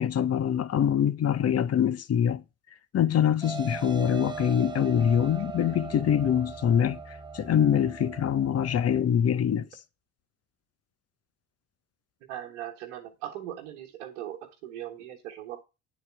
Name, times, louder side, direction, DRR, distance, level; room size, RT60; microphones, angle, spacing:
voice 1, 0.0-2.4 2.9-9.7, left 9 dB, 35° left, 0.7 m, -24 dB
sound 1, 3.4-9.0, right 5 dB, 10° right, 1.0 m, -40 dB
voice 2, 12.3-15.6, right 12 dB, 75° right, 1.3 m, -39 dB
9.1 x 4.1 x 6.0 m
hypercardioid pair, 60°, 43 cm